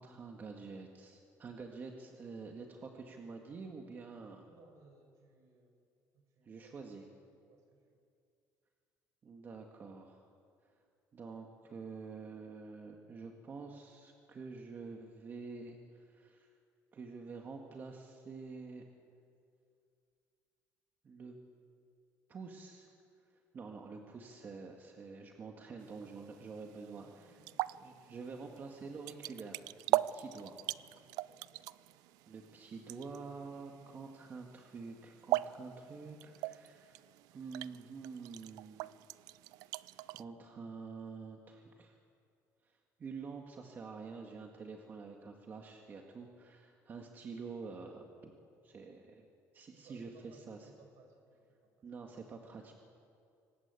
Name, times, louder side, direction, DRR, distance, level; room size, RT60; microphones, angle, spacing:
voice 1, 0.0-4.5 6.4-7.0 9.2-10.3 10.6-10.9 11.1-16.6 16.9-18.8 21.0-21.4 22.3-27.4 27.8-30.5 32.3-37.0 37.3-38.9 39.6-39.7 40.1-42.0 42.6-48.4 48.6-49.3 49.5-50.7 51.8-52.7, right 4 dB, 30° right, 2 dB, 1.9 m, -48 dB
voice 2, 4.5-5.8 6.1-6.9 7.4-8.0 26.8-27.6 28.5-28.8 30.7-31.7 49.7-51.9, right 4 dB, 60° right, 4 dB, 5.3 m, -63 dB
sound 1, 25.8-40.2, right 17 dB, 85° right, 0.5 m, -41 dB
25.5 x 19.0 x 8.3 m, 2.4 s
cardioid pair, 140°, 6 cm